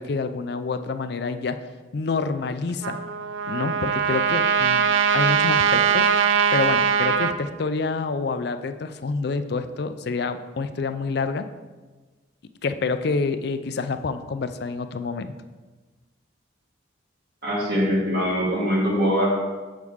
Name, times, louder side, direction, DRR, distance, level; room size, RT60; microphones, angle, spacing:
voice 1, 0.0-1.6 1.9-3.0 3.5-4.8 5.1-6.1 6.5-11.5 12.6-15.3, left 4 dB, 55° left, 10 dB, 0.4 m, -27 dB
Trumpet, 2.8-7.3, right 7 dB, 80° right, 0.4 m, -21 dB
voice 2, 17.4-19.3, equal, 55° right, -3 dB, 1.9 m, -22 dB
7.3 x 6.3 x 3.5 m, 1.3 s
head